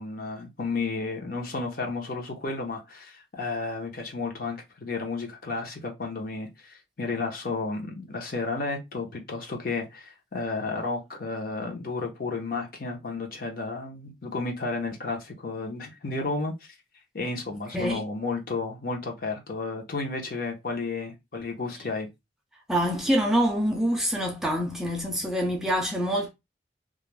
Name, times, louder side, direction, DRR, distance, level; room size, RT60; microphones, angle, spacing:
voice 1, 0.0-16.7 17.1-22.1, left 3 dB, 50° left, 0.6 m, -32 dB
voice 2, 22.7-26.3, equal, 5° right, 0.3 m, -25 dB
2.4 x 2.0 x 2.9 m
head